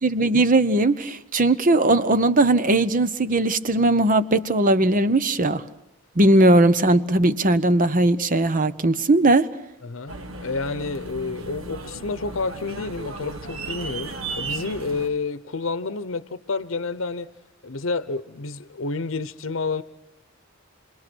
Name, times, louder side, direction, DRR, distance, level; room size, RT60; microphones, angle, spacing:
voice 1, 0.0-5.6 6.2-9.5, right 2 dB, 40° right, 0.9 m, -19 dB
voice 2, 9.8-10.1 10.4-17.3 17.6-19.8, left 3 dB, 70° left, 0.8 m, -29 dB
sound 1, 10.1-15.1, right 3 dB, 90° right, 1.3 m, -35 dB
29.5 x 21.5 x 6.2 m
head